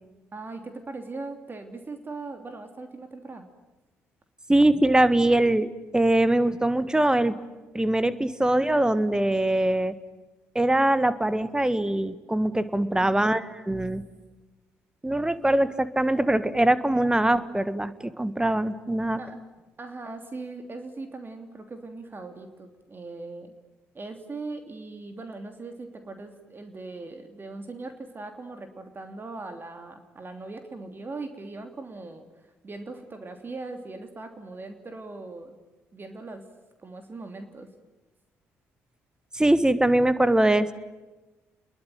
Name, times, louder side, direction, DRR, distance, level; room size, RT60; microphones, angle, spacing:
voice 1, 0.3-3.5 19.2-19.4 19.8-23.5 23.9-35.6 35.9-36.4 36.8-37.7, right 3 dB, 30° right, 6 dB, 3.0 m, -40 dB
voice 2, 4.5-7.3 7.7-9.9 10.5-14.0 15.0-19.2 39.3-40.7, right 1 dB, 10° right, 15 dB, 1.6 m, -22 dB
28.5 x 22.0 x 9.2 m, 1.1 s
figure-of-eight pair, 45°, 7 cm